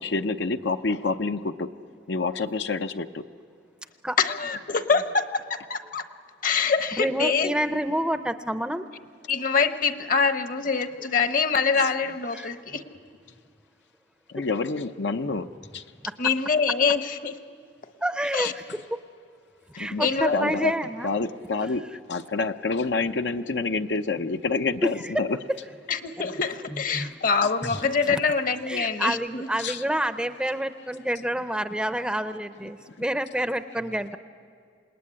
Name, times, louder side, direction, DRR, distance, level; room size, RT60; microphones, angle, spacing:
voice 1, 0.0-1.7 2.1-3.2 11.8-11.9 14.3-15.8 19.8-20.0 20.3-20.7 21.0-21.8 22.1-25.4 27.7-27.8 29.6-29.8 32.9-33.0, left 3 dB, 70° left, 7 dB, 0.7 m, -28 dB
voice 2, 4.2-6.1 6.4-7.5 9.3-12.8 16.2-17.4 18.3-18.5 20.0-20.7 25.9-29.5, left 5 dB, 50° left, 9 dB, 1.1 m, -25 dB
voice 3, 7.0-8.9 12.3-12.5 18.0-18.6 18.9-19.0 19.7-21.1 24.8-25.2 26.2-26.3 26.7-27.2 28.1-28.2 28.7-34.2, right 1 dB, 5° right, 10 dB, 0.6 m, -28 dB
27.5 x 20.0 x 9.8 m, 2.2 s
head